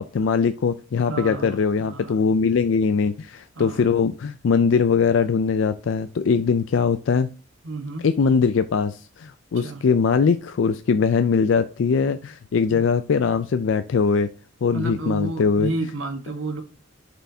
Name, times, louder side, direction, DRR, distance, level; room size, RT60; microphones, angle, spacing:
voice 1, 0.1-7.3 8.0-14.3 14.6-15.7, left 5 dB, 70° left, 0.4 m, -21 dB
voice 2, 1.1-2.2 3.5-3.9 7.6-8.1 9.5-9.8 12.6-12.8 14.7-16.6, right 2 dB, 85° right, 1.2 m, -31 dB
11.0 x 4.4 x 2.7 m
head